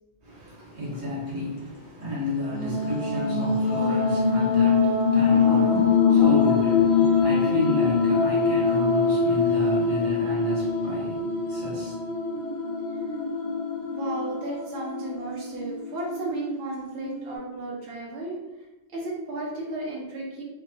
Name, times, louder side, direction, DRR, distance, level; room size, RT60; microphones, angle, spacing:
voice 1, 0.2-12.0, left 1 dB, 85° right, 1.2 m, -32 dB
sound 1, 2.5-17.4, left 5 dB, 75° left, 0.9 m, -23 dB
voice 2, 13.9-18.4 18.9-20.4, right 2 dB, 65° right, 0.8 m, -33 dB
2.7 x 2.2 x 2.6 m
omnidirectional pair, 1.1 m